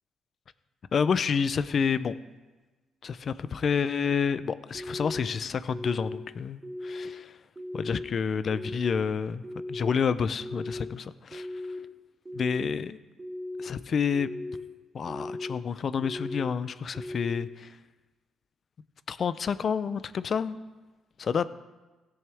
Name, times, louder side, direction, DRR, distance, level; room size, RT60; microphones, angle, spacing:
voice 1, 0.9-2.1 3.0-7.3 7.8-9.4 9.7-11.5 12.3-13.0 13.6-14.3 14.9-17.7 19.1-20.6 21.2-21.5, left 6 dB, 50° left, 15 dB, 0.5 m, -29 dB
sound 1, 4.7-5.2 5.7-6.2 6.6-7.1 7.6-8.0 8.5-9.0 9.4-9.9 10.4-10.9 11.3-11.8 12.3-12.7 13.2-13.7 14.1-14.6 15.1-15.6 16.0-16.5 16.9-17.4, left 1 dB, 20° right, 3.3 m, -37 dB
16.5 x 7.1 x 3.4 m, 1.2 s
cardioid pair, 90°, 0 cm